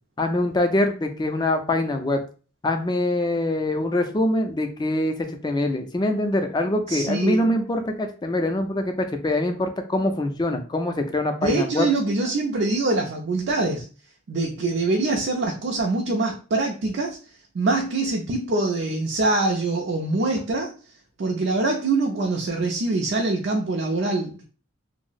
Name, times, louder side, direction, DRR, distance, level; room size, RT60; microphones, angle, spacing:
voice 1, 0.2-2.2 2.6-11.9, left 1 dB, 20° left, 6 dB, 0.3 m, -24 dB
voice 2, 6.9-7.5 11.4-13.8 14.3-17.2 17.5-20.7 21.2-24.4, right 2 dB, 55° right, 0 dB, 0.4 m, -24 dB
2.6 x 2.0 x 3.8 m, 0.37 s
head